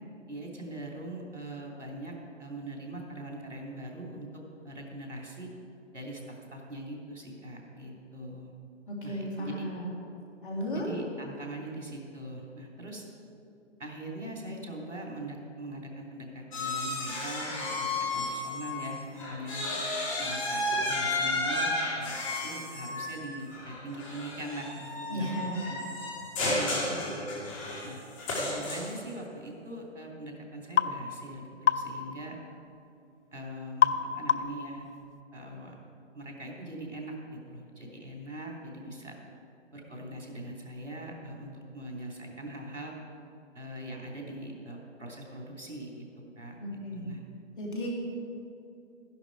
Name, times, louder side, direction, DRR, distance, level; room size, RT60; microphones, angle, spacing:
voice 1, 0.3-5.5 5.9-8.5 9.0-9.7 10.7-13.1 13.8-25.3 25.6-25.8 26.4-28.0 28.3-32.4 33.3-34.8 35.3-35.7 36.1-39.1 39.7-42.9 43.5-46.0 46.4-46.6 46.9-47.2, right 1 dB, 80° right, -1 dB, 3.1 m, -41 dB
voice 2, 8.9-9.9 10.4-10.9 25.1-25.7 46.6-47.2 47.6-47.9, equal, 45° left, -2 dB, 2.9 m, -34 dB
sound 1, 16.5-18.9 19.2-29.1, left 2 dB, 25° left, 2.5 m, -33 dB
sound 2, 30.8-31.0 31.7-31.9 33.8-34.0 34.3-34.6, left 8 dB, 70° left, 0.6 m, -24 dB
12.0 x 11.0 x 4.7 m, 2.6 s
figure-of-eight pair, 140°, 36 cm